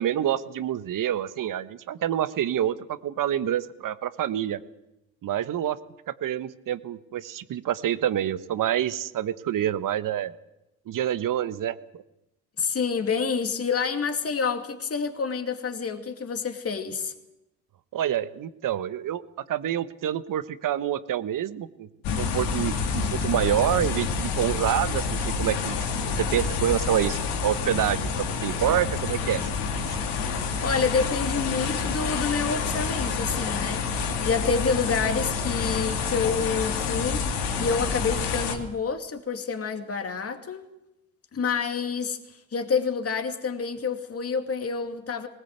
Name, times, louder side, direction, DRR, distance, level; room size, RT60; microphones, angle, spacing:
voice 1, 0.0-4.6 5.2-5.8 6.1-10.3 10.9-12.0 17.9-19.2 19.5-21.9 22.2-25.9 26.2-29.5 29.9-30.0, right 11 dB, 55° right, 14 dB, 1.2 m, -27 dB
voice 2, 12.6-17.1 30.4-40.6 41.3-45.3, left 5 dB, 35° left, 6 dB, 2.4 m, -28 dB
sound 1, 22.0-38.6, left 5 dB, 75° left, 2.7 m, -28 dB
19.5 x 18.0 x 8.1 m, 0.89 s
supercardioid pair, 65°, 39 cm